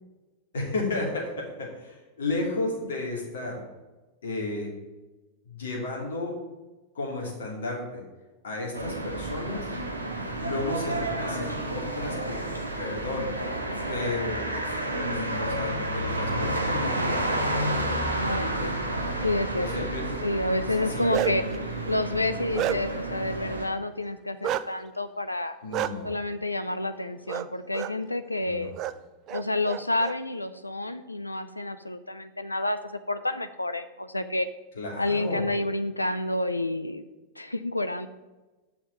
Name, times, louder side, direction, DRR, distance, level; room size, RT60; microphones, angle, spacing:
voice 1, 0.5-3.6 4.2-4.7 5.4-6.4 6.9-8.0 8.4-9.7 10.4-12.5 12.8-13.4 13.9-14.5 15.0-17.3 18.4-18.7 19.6-20.1 20.6-21.1 25.6-26.1 28.4-28.7 34.7-35.4, left 2 dB, 65° left, -2 dB, 2.7 m, -33 dB
sound 1, 8.7-23.6, right 1 dB, 80° right, 1.2 m, -30 dB
voice 2, 18.2-18.8 19.2-19.9 20.2-21.4 21.9-25.6 26.0-28.7 29.3-34.5 35.0-37.0 37.4-38.1, left 2 dB, 85° left, 10 dB, 0.4 m, -29 dB
Bark, 20.8-21.5 22.1-23.1 24.4-24.6 25.7-25.9 27.3-27.5 27.7-27.9 28.7-28.9 29.3-30.1, right 11 dB, 35° right, 0.4 m, -30 dB
7.2 x 5.8 x 7.6 m, 1.1 s
figure-of-eight pair, 90°, 0 cm